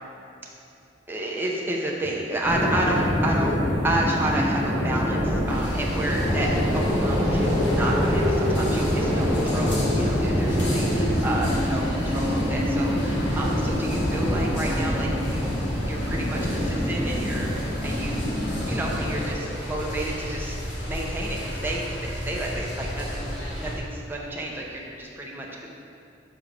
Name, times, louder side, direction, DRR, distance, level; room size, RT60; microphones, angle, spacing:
voice 1, 1.1-3.6 3.8-15.5 15.8-18.3 18.6-20.6 20.8-23.3 23.6-25.7, right 1 dB, 10° right, -3 dB, 0.8 m, -31 dB
sound 1, 2.4-19.2, equal, 15° left, 1.5 m, -25 dB
sound 2, 5.5-23.8, equal, 75° left, 1.7 m, -33 dB
6.2 x 5.1 x 5.1 m, 2.7 s
head